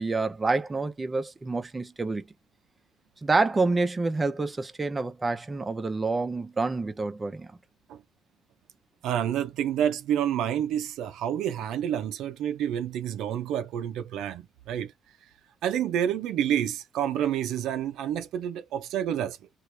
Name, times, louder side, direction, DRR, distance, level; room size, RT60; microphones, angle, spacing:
voice 1, 0.0-2.2 3.2-7.5, right 3 dB, 20° right, 0.5 m, -27 dB
voice 2, 9.0-14.9 15.6-19.4, right 10 dB, 80° right, 0.5 m, -28 dB
3.0 x 2.4 x 3.3 m
cardioid pair, 100°, 0 cm